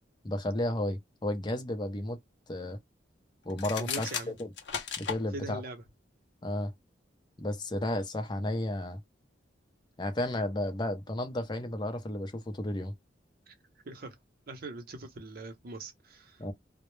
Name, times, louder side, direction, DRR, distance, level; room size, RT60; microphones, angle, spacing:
voice 1, 0.2-2.2 2.5-2.8 3.5-4.5 5.0-5.6 6.4-6.7 7.4-9.0 10.0-12.9 16.4-16.5, left 1 dB, 25° left, 0.5 m, -33 dB
sound 1, 3.5-5.2, left 7 dB, 70° left, 0.5 m, -35 dB
voice 2, 3.8-4.4 5.3-5.8 13.5-13.6 13.8-14.2 14.5-16.4, right 2 dB, 55° right, 0.6 m, -42 dB
2.1 x 2.0 x 3.0 m
head